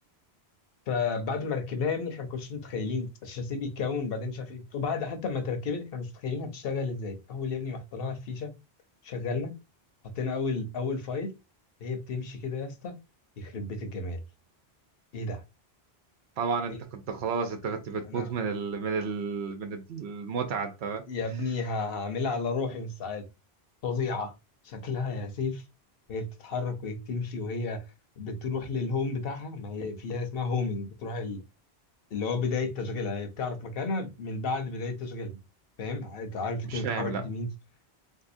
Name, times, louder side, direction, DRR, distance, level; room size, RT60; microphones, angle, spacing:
voice 1, 0.9-8.5 9.0-9.6 10.2-11.3 11.8-13.0 13.4-14.2 15.1-15.4 16.7-16.8 18.0-18.3 21.1-23.2 23.8-24.3 24.6-25.6 26.1-27.8 28.2-31.4 32.1-35.4 35.8-37.5, left 4 dB, 65° left, 0.9 m, -32 dB
voice 2, 16.4-21.0 36.7-37.2, right 5 dB, 85° right, 0.9 m, -32 dB
3.6 x 2.7 x 2.5 m
omnidirectional pair, 1.1 m